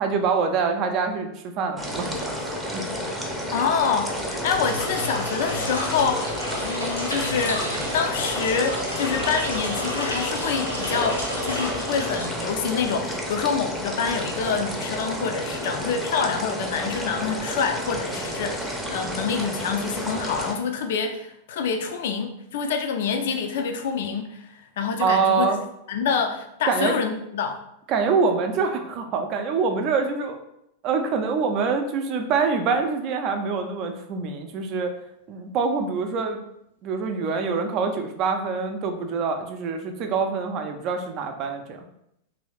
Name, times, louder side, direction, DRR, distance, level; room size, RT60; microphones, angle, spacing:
voice 1, 0.0-2.8 25.0-25.6 26.7-27.0 27.9-30.4 30.8-34.9 35.3-36.4 36.8-41.8, right 5 dB, 40° right, 5 dB, 0.5 m, -25 dB
sound 1, 1.8-20.5, equal, ahead, 0.6 m, -31 dB
voice 2, 3.3-6.2 6.6-25.5 25.9-27.6, left 6 dB, 55° left, 6 dB, 0.4 m, -27 dB
sound 2, 4.5-12.8, left 1 dB, 85° left, 0.9 m, -31 dB
3.0 x 2.7 x 3.2 m, 0.79 s
figure-of-eight pair, 90°, 0 cm